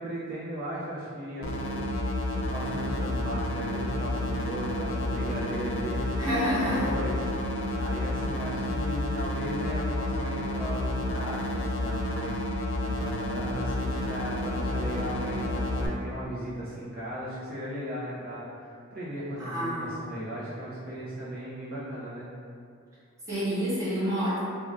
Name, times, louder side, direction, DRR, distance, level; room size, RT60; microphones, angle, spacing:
voice 1, 0.0-7.2 7.7-22.3, right 1 dB, 45° right, -10 dB, 0.5 m, -37 dB
sound 1, 1.4-15.9, left 1 dB, 60° left, 0.4 m, -30 dB
voice 2, 6.2-6.9 19.4-19.9 23.3-24.4, equal, 15° right, -11 dB, 0.9 m, -28 dB
2.5 x 2.3 x 3.2 m, 2.4 s
head